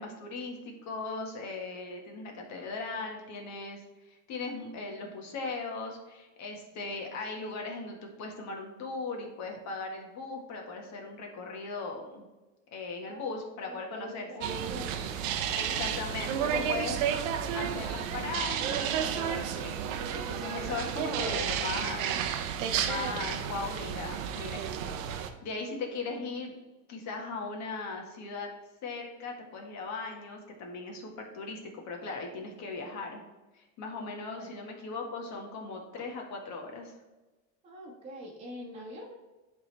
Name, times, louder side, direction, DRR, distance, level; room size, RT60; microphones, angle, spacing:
voice 1, 0.0-12.3 12.7-14.6 15.5-17.0 17.5-22.1 22.3-26.5 26.9-28.5 28.8-33.2 33.5-36.9, left 3 dB, 45° left, 1 dB, 1.7 m, -38 dB
voice 2, 13.1-15.2 15.6-16.1 34.3-34.5 37.6-39.1, equal, 15° right, -4 dB, 1.3 m, -45 dB
sound 1, 14.4-25.3, right 8 dB, 90° right, 0.8 m, -32 dB
10.5 x 3.7 x 3.4 m, 1.1 s
supercardioid pair, 135°, 39 cm